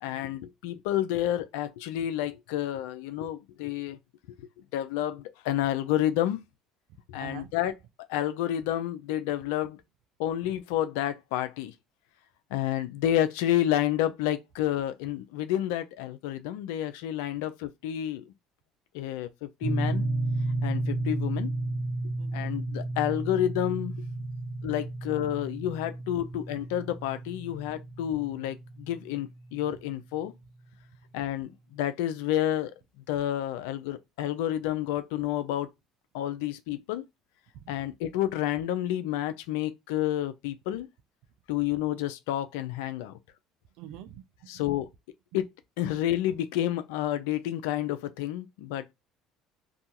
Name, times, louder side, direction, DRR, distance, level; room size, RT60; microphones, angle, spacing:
voice 1, 0.0-4.0 4.7-6.4 7.1-7.7 8.1-9.8 10.2-11.7 12.5-18.2 18.9-20.1 20.6-21.5 22.3-24.0 24.6-30.3 31.1-32.7 33.1-35.7 36.1-37.0 37.7-40.9 41.5-43.2 44.5-44.9 45.3-45.5 45.8-48.9, left 12 dB, 80° left, 0.4 m, -30 dB
voice 2, 7.2-7.5 22.2-22.5 24.2-24.3 37.5-37.6 43.8-44.6, right 11 dB, 75° right, 0.4 m, -46 dB
sound 1, 19.6-29.8, right 2 dB, 40° right, 0.7 m, -33 dB
2.4 x 2.2 x 2.8 m
hypercardioid pair, 75°, 0 cm